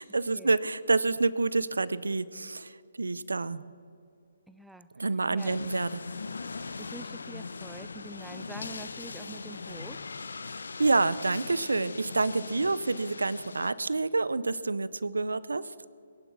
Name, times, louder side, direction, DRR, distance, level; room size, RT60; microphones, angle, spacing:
voice 1, 0.0-3.6 5.0-6.0 10.8-15.7, right 3 dB, 80° right, 17 dB, 0.6 m, -28 dB
voice 2, 4.5-4.9 5.3-5.6 6.5-10.1, right 1 dB, 5° right, 12 dB, 0.4 m, -46 dB
sound 1, 5.4-13.7, left 4 dB, 75° left, 0.7 m, -40 dB
21.0 x 11.0 x 6.2 m, 2.5 s
figure-of-eight pair, 140°, 0 cm